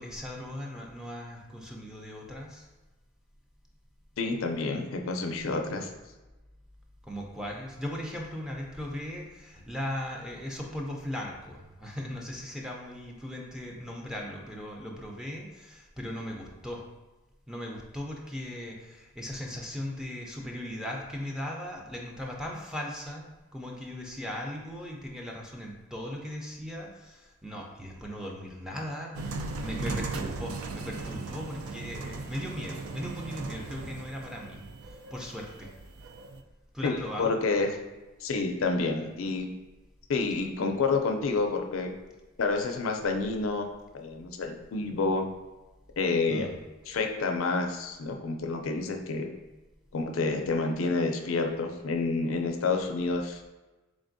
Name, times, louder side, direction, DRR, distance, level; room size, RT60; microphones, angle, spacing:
voice 1, 0.0-2.7 7.0-16.8 17.5-35.7 36.7-37.4 46.3-46.6, left 1 dB, 5° right, -2 dB, 0.4 m, -38 dB
voice 2, 4.2-5.9 36.8-37.7 38.2-39.5 40.1-41.9 42.4-43.7 43.9-45.3 46.0-46.5 46.9-49.3 49.9-53.4, left 3 dB, 70° left, 4 dB, 0.4 m, -29 dB
sound 1, 29.1-36.4, right 3 dB, 85° right, 0.4 m, -38 dB
3.8 x 3.4 x 2.6 m, 1.1 s
head